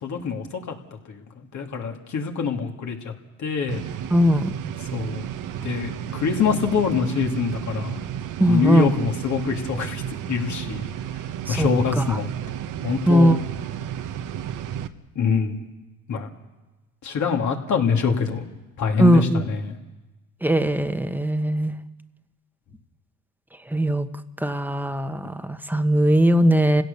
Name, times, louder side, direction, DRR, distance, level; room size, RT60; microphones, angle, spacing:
voice 1, 0.0-0.7 1.1-1.2 1.5-3.1 3.4-3.8 4.9-5.3 5.6-8.0 8.5-10.0 10.3-10.9 11.5-12.3 12.8-13.4 15.1-15.6 16.1-16.3 17.0-18.5 18.8-19.8, left 6 dB, 55° left, 3 dB, 2.8 m, -24 dB
sound 1, 3.7-14.9, right 10 dB, 65° right, 1.2 m, -32 dB
voice 2, 4.1-4.5 8.4-8.9 11.5-11.7 13.1-13.4 19.0-19.4 20.4-21.7 23.7-24.1 24.4-26.8, right 1 dB, 5° right, 9 dB, 1.3 m, -19 dB
28.5 x 16.5 x 7.0 m, 1.1 s
supercardioid pair, 80°, 33 cm